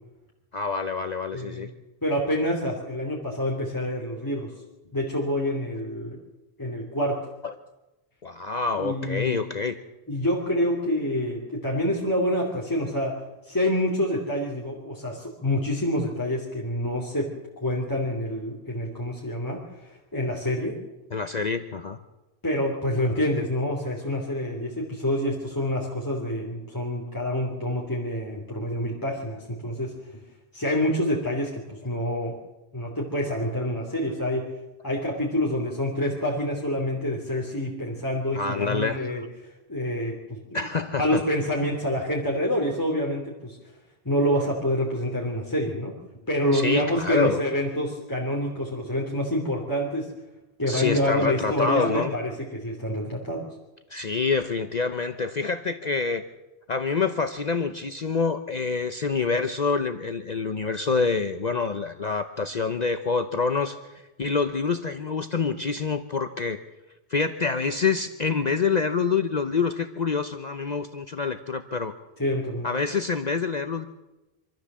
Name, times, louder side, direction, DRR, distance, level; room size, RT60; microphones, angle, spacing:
voice 1, 0.5-1.7 7.4-7.5 8.2-9.8 21.1-22.0 38.3-39.3 40.5-41.2 46.5-47.4 50.7-52.2 53.9-56.2 56.7-66.6 67.1-71.9 72.6-73.9, left 4 dB, 45° left, 9 dB, 0.9 m, -26 dB
voice 2, 1.3-1.7 2.0-4.5 4.9-6.2 6.6-7.2 8.8-9.4 10.1-13.2 13.5-17.3 17.6-20.8 22.4-29.9 30.5-32.3 32.7-34.5 34.8-39.2 39.7-40.4 41.0-43.6 44.0-45.9 46.3-50.1 50.6-53.4 72.2-72.7, equal, 20° left, -3 dB, 3.0 m, -27 dB
25.5 x 13.5 x 7.4 m, 1.0 s
omnidirectional pair, 1.0 m